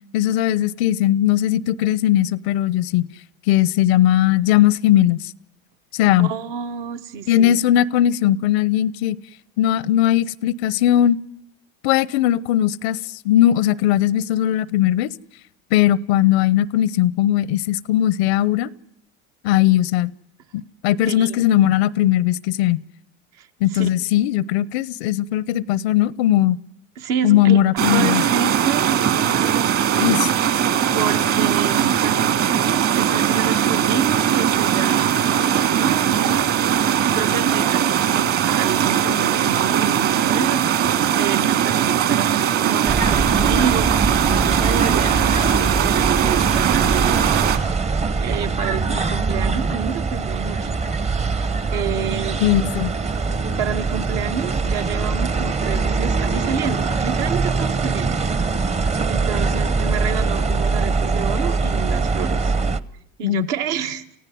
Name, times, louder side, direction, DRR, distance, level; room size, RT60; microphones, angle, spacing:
voice 1, 0.1-3.1 3.5-5.2 5.9-6.3 7.3-9.2 9.6-11.2 11.8-13.0 13.2-15.1 15.7-18.7 19.4-20.1 20.5-22.8 23.6-26.6 27.2-28.2 30.0-30.3 52.4-52.9 63.2-63.5, left 12 dB, 90° left, 23 dB, 0.8 m, -18 dB
voice 2, 6.2-7.6 21.1-21.5 23.4-23.5 23.7-23.9 27.0-30.2 30.9-47.5 48.2-50.8 51.7-52.4 53.6-58.2 59.1-62.5 63.2-64.0, right 7 dB, 70° right, 6 dB, 2.0 m, -29 dB
sound 1, 27.8-47.6, right 9 dB, 50° right, 2.4 m, -20 dB
sound 2, 42.9-62.8, right 4 dB, 20° right, 0.9 m, -22 dB
29.0 x 16.0 x 9.3 m, 0.77 s
supercardioid pair, 120°, 31 cm